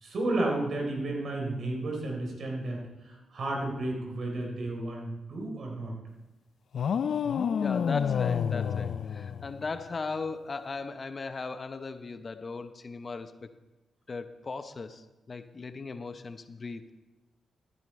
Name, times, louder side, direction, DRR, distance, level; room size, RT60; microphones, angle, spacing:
voice 1, 0.0-6.0, right 2 dB, 65° right, 0 dB, 3.7 m, -32 dB
sound 1, 6.7-9.9, left 7 dB, 65° left, 0.3 m, -29 dB
voice 2, 7.6-13.5 14.1-16.9, left 4 dB, 45° left, 11 dB, 0.8 m, -37 dB
13.5 x 9.7 x 4.3 m, 1.1 s
supercardioid pair, 50°, 0 cm